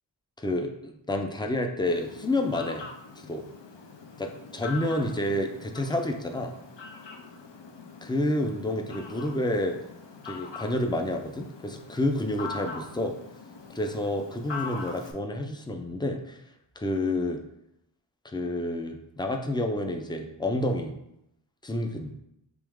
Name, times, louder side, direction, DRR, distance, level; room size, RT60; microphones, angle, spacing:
voice 1, 0.4-2.8 3.2-3.4 4.2-6.5 8.0-9.8 10.2-13.1 13.7-16.4 16.8-17.4 18.3-20.9 21.6-22.1, left 1 dB, 10° left, 4 dB, 0.4 m, -29 dB
Fowl, 1.9-15.1, left 4 dB, 65° left, 0.6 m, -43 dB
3.4 x 3.0 x 3.5 m, 0.81 s
wide cardioid pair, 50°, 46 cm